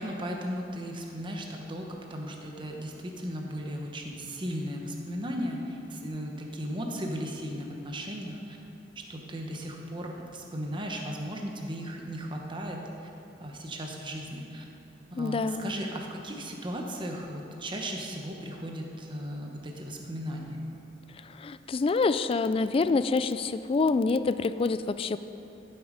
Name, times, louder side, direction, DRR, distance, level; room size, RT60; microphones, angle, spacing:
voice 1, 0.0-8.6 9.1-13.1 13.4-14.6 15.1-20.6, equal, 25° right, 1 dB, 1.0 m, -36 dB
voice 2, 15.2-15.7 21.2-25.2, left 4 dB, 30° left, 13 dB, 0.3 m, -26 dB
12.5 x 8.0 x 5.0 m, 2.9 s
head